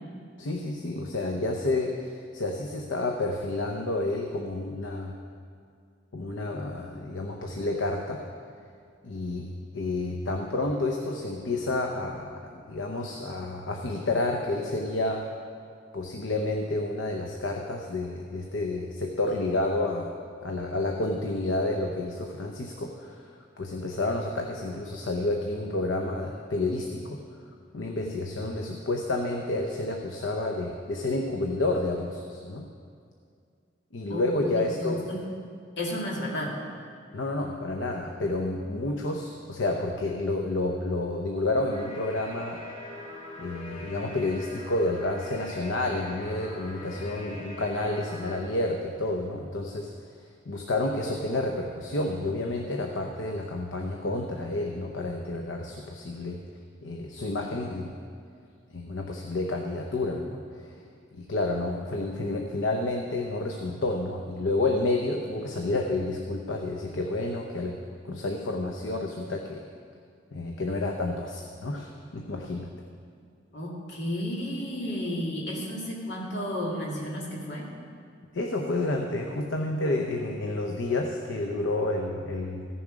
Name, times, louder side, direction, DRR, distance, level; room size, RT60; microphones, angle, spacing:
voice 1, 0.4-5.2 6.1-8.2 9.0-15.3 15.9-20.1 20.4-27.2 27.7-32.7 33.9-35.0 37.1-42.6 43.4-56.4 56.8-57.9 58.7-67.8 68.0-69.6 70.3-72.7 78.3-82.7, left 2 dB, 90° left, 2 dB, 0.8 m, -30 dB
voice 2, 34.1-35.3 35.8-36.5 73.5-77.7, equal, 65° left, -3 dB, 2.2 m, -32 dB
sound 1, 41.7-48.4, left 1 dB, 40° left, 1.7 m, -42 dB
14.5 x 7.1 x 5.0 m, 2.2 s
head